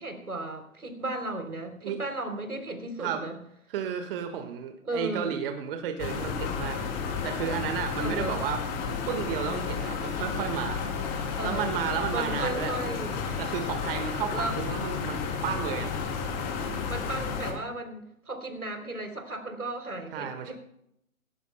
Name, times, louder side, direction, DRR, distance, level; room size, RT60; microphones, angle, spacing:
voice 1, 0.0-3.4 4.8-5.3 8.0-8.4 11.4-11.7 12.1-13.2 14.3-14.5 16.9-20.5, right 2 dB, 90° right, 5 dB, 3.6 m, -35 dB
voice 2, 3.7-8.6 9.1-12.7 13.4-16.1 20.1-20.5, right 8 dB, 40° right, 6 dB, 1.7 m, -33 dB
sound 1, 6.0-17.5, left 5 dB, 30° left, 3.3 m, -32 dB
18.5 x 17.0 x 2.3 m, 0.75 s
figure-of-eight pair, 130°, 43 cm